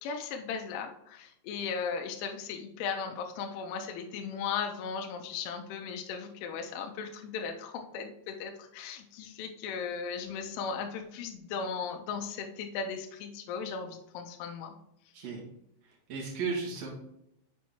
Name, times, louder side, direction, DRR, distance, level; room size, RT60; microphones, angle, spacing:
voice 1, 0.0-14.8, left 6 dB, 85° left, 4 dB, 3.1 m, -37 dB
voice 2, 16.1-16.9, right 5 dB, 80° right, -3 dB, 1.4 m, -34 dB
7.1 x 6.2 x 3.0 m, 0.80 s
omnidirectional pair, 5.9 m